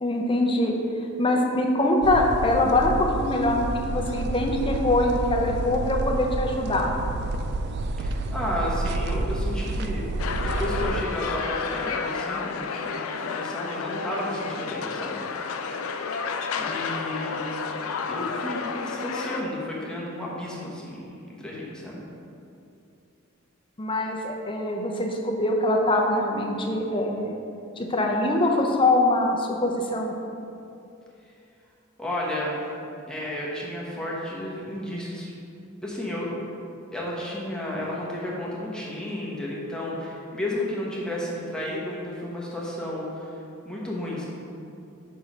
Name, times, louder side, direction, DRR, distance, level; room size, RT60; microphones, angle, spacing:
voice 1, 0.0-0.7 1.2-6.9 23.8-27.3 27.8-30.1, left 1 dB, 25° left, 0 dB, 0.7 m, -23 dB
sound 1, 2.0-11.1, right 2 dB, 50° right, 0.3 m, -29 dB
voice 2, 8.0-10.1 10.4-15.2 15.6-16.1 16.6-17.4 18.1-22.0 32.0-32.6 33.1-35.3 35.8-36.3 36.9-43.3 43.6-44.3, left 1 dB, 5° left, -5 dB, 1.1 m, -32 dB
sound 2, 10.2-19.4, left 5 dB, 80° left, 0.4 m, -31 dB
5.4 x 4.8 x 6.0 m, 2.7 s
head